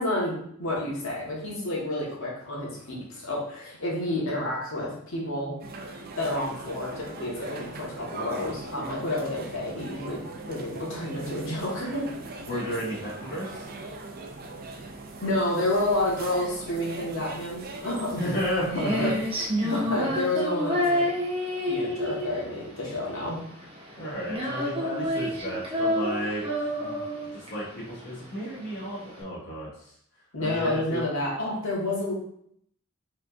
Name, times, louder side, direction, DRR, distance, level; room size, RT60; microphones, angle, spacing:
voice 1, 0.0-5.5 6.2-12.0 15.2-18.2 18.7-19.1 19.6-21.1 21.7-23.4 30.3-32.1, left 1 dB, 70° left, -4 dB, 1.6 m, -30 dB
sound 1, 5.6-20.5, right 3 dB, 45° right, 0.5 m, -41 dB
voice 2, 12.5-13.7 18.2-19.1 24.0-29.7 30.4-31.0, equal, 45° left, -8 dB, 1.2 m, -32 dB
Female singing, 18.2-29.2, left 1 dB, 25° right, 1.0 m, -29 dB
4.8 x 3.7 x 2.6 m, 0.68 s
head